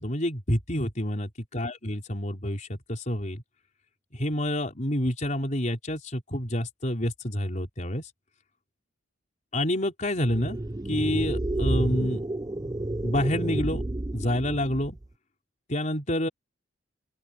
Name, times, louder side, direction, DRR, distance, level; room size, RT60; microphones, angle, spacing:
voice 1, 0.0-3.4 4.1-8.1 9.5-10.6 10.9-12.2 13.0-13.8 14.1-15.0 15.7-16.3, left 1 dB, 40° left, 4.6 m, -28 dB
sound 1, 10.2-15.1, right 1 dB, 20° right, 0.6 m, -30 dB
open air
head